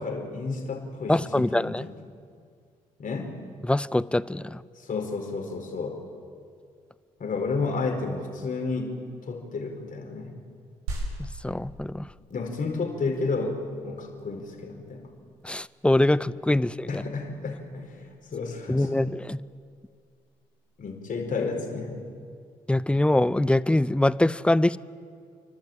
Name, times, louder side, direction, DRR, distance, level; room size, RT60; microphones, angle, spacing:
voice 1, 0.0-1.9 3.0-3.4 4.7-6.0 7.2-9.0 9.2-10.3 12.3-15.1 16.9-19.1 20.8-22.0, left 4 dB, 50° left, 2 dB, 4.6 m, -31 dB
voice 2, 1.1-1.8 3.7-4.6 11.2-12.1 15.4-17.0 18.7-19.4 22.7-24.8, left 1 dB, 5° left, 18 dB, 0.6 m, -23 dB
sound 1, 10.9-20.8, right 2 dB, 85° right, 4.1 m, -43 dB
30.0 x 12.0 x 8.9 m, 2.2 s
hypercardioid pair, 50°, 18 cm